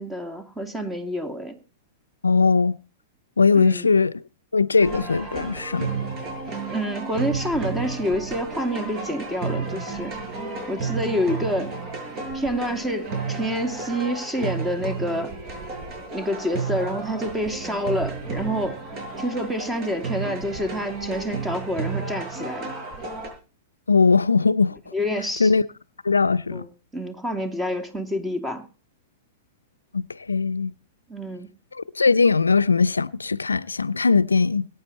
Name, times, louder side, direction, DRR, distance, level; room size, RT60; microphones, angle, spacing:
voice 1, 0.0-1.6 3.5-3.9 6.7-10.1 10.7-11.7 12.3-15.3 16.1-18.8 19.2-22.7 24.9-25.5 26.5-28.6 31.1-31.5, equal, 10° right, 2.7 m, -28 dB
voice 2, 2.2-2.8 3.4-4.1 4.5-5.9 23.9-24.8 25.4-25.6 26.0-26.7 29.9-30.7 32.0-34.7, left 4 dB, 90° left, 0.6 m, -20 dB
sound 1, 4.8-23.3, right 4 dB, 40° right, 6.5 m, -32 dB
22.0 x 9.5 x 4.2 m
hypercardioid pair, 105°, 0 cm